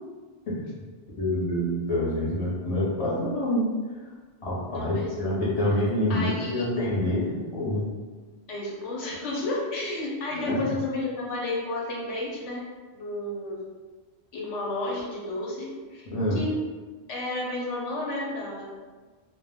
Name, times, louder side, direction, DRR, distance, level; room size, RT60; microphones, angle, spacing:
voice 1, 0.5-0.8 1.2-3.7 4.4-7.9 10.4-10.6 16.1-16.4, left 1 dB, 35° left, -7 dB, 0.7 m, -27 dB
voice 2, 4.7-5.3 6.1-6.9 8.5-12.7 12.9-13.6 14.3-16.5 17.1-18.7, left 2 dB, 85° left, -3 dB, 1.0 m, -32 dB
2.2 x 2.1 x 3.4 m, 1.4 s
omnidirectional pair, 1.2 m